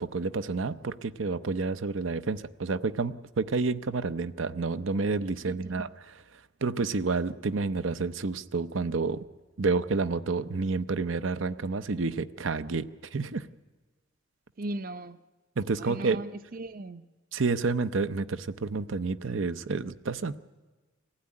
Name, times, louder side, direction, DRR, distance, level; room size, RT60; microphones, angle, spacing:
voice 1, 0.0-5.9 6.6-9.2 9.6-13.5 15.6-16.2 17.3-20.4, right 4 dB, 80° right, 13 dB, 0.7 m, -29 dB
voice 2, 5.5-5.9 14.6-15.2 15.8-17.0, right 2 dB, 45° right, 13 dB, 0.7 m, -38 dB
23.5 x 16.0 x 9.7 m, 1.3 s
head